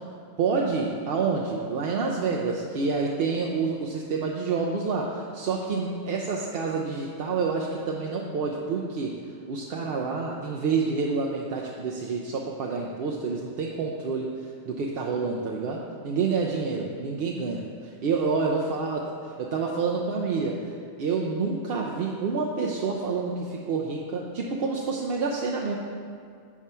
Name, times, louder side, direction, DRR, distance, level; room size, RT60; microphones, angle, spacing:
voice 1, 0.4-9.2 9.5-25.8, right 4 dB, 60° right, -1 dB, 0.7 m, -28 dB
7.3 x 4.7 x 5.5 m, 2.2 s
omnidirectional pair, 1.2 m